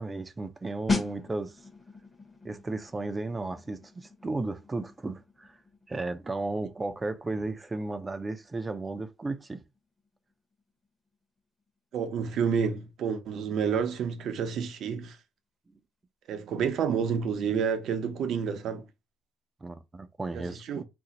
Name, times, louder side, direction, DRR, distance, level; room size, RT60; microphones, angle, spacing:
voice 1, 0.0-1.6 2.4-5.5 5.9-9.6 19.6-20.8, right 2 dB, 20° right, 0.4 m, -34 dB
sound 1, 0.9-11.4 11.7-11.9, left 3 dB, 15° left, 0.8 m, -39 dB
voice 2, 11.9-15.2 16.3-18.9 20.3-20.8, right 7 dB, 65° right, 0.6 m, -29 dB
2.5 x 2.0 x 4.0 m
cardioid pair, 90°, 0 cm